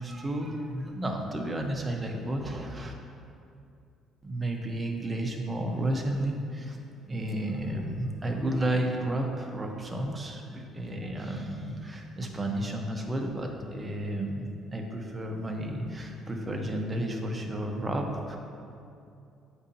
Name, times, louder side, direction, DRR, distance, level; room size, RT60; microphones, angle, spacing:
voice 1, 0.0-2.9 4.2-6.8 7.0-18.4, right 1 dB, 20° right, 1 dB, 1.0 m, -32 dB
8.1 x 5.1 x 2.8 m, 2.5 s
supercardioid pair, 75°, 0 cm